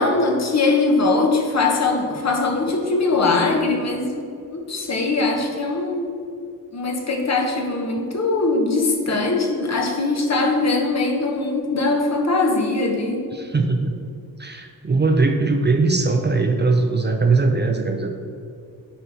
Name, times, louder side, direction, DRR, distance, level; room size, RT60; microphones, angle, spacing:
voice 1, 0.0-4.2 4.5-6.1 6.7-13.2, left 3 dB, 45° left, 1 dB, 1.1 m, -21 dB
voice 2, 13.3-14.0 14.4-18.1, right 3 dB, 30° right, 4 dB, 0.5 m, -20 dB
9.1 x 4.2 x 4.1 m, 2.4 s
wide cardioid pair, 90°, 36 cm